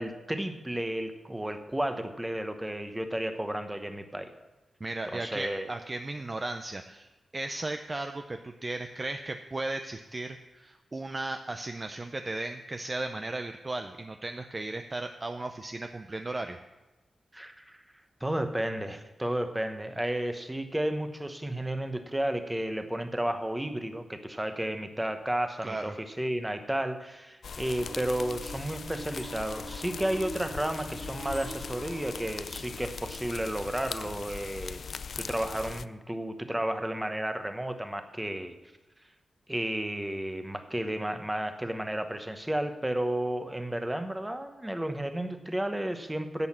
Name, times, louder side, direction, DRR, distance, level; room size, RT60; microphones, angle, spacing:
voice 1, 0.0-4.3 5.1-5.7 17.3-17.8 18.2-34.8 35.2-38.5 39.5-46.5, right 1 dB, 10° right, 7 dB, 1.0 m, -32 dB
voice 2, 4.8-16.6 25.6-26.0, right 2 dB, 25° right, 6 dB, 0.5 m, -36 dB
sound 1, 27.4-35.9, left 5 dB, 55° left, 0.3 m, -40 dB
sound 2, 27.8-34.7, right 3 dB, 75° right, 2.7 m, -46 dB
11.0 x 8.0 x 7.3 m, 1.1 s
wide cardioid pair, 150°, 0 cm